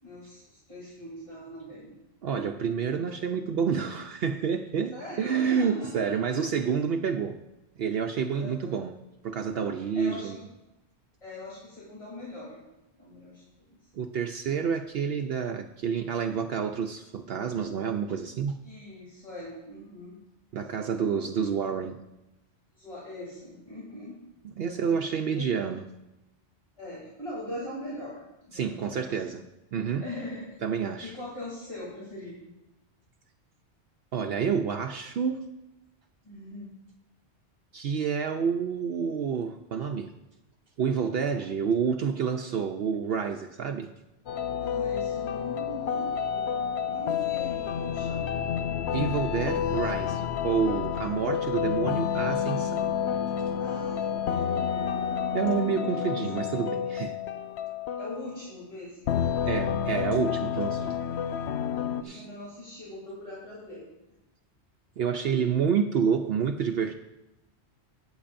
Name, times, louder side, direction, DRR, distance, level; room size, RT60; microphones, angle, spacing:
voice 1, 0.0-1.9 4.9-6.8 8.3-8.8 9.9-10.4 11.2-12.6 13.0-13.8 18.6-20.1 20.7-21.1 22.7-24.1 24.6-25.5 26.8-29.2 29.7-30.5 31.0-32.5 36.2-36.7 44.6-46.5 46.8-48.3 53.6-54.0 54.3-55.1 56.1-56.2 58.0-59.1 62.0-63.8 65.1-65.7, left 1 dB, 30° left, -7 dB, 3.3 m, -41 dB
voice 2, 2.2-7.4 7.8-9.0 9.2-10.4 13.9-18.6 20.5-22.0 24.4-25.8 28.5-29.4 29.7-30.1 30.6-31.2 34.1-35.5 37.7-40.1 40.8-43.9 48.9-52.9 55.3-57.2 59.5-61.0 62.0-62.3 65.0-66.9, right 6 dB, 65° right, 5 dB, 0.8 m, -29 dB
sound 1, 44.3-58.4 59.1-62.0, left 8 dB, 75° left, 0.9 m, -29 dB
18.5 x 8.0 x 2.6 m, 0.94 s
omnidirectional pair, 1.1 m